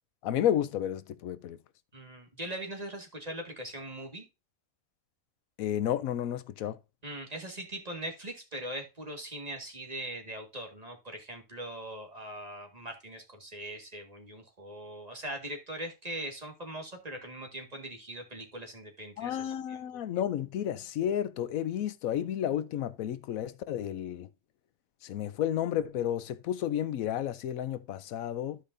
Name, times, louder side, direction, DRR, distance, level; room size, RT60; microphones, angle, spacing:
voice 1, 0.2-1.6 5.6-6.8 19.2-24.3 25.0-28.6, left 10 dB, 85° left, 1.1 m, -32 dB
voice 2, 1.9-4.2 7.0-19.8, right 1 dB, 30° right, 1.8 m, -41 dB
13.5 x 5.1 x 2.6 m
omnidirectional pair, 1.4 m